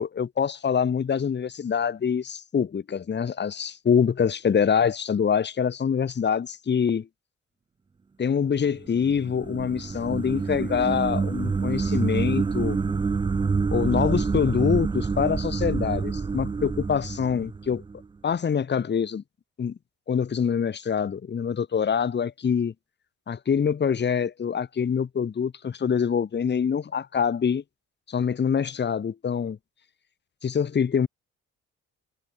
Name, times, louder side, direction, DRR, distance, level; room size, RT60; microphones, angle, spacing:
voice 1, 0.0-7.1 8.2-12.8 13.7-17.8 18.2-19.2 19.6-19.8 20.1-22.7 23.3-27.6 28.1-29.6 30.4-31.1, left 7 dB, 35° left, 1.3 m, -25 dB
sound 1, 8.8-18.0, right 4 dB, 15° right, 0.4 m, -27 dB
cardioid pair, 90°, 30 cm